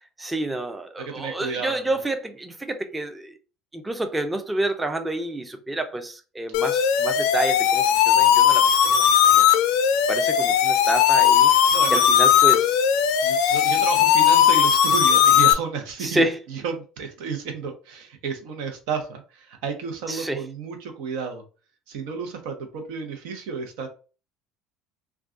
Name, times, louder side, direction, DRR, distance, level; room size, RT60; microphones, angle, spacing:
voice 1, 0.2-3.3 3.7-9.0 9.3-9.6 10.1-11.5 11.9-12.8 13.4-13.8 14.3-14.4 16.0-16.4 20.1-20.4, right 1 dB, 15° right, 0.5 m, -29 dB
voice 2, 1.0-1.7 11.7-12.0 13.2-16.2 16.5-21.4 21.9-23.9, right 5 dB, 80° right, 0.8 m, -32 dB
sound 1, 6.5-15.5, left 9 dB, 75° left, 0.4 m, -18 dB
2.4 x 2.2 x 3.6 m
supercardioid pair, 105°, 0 cm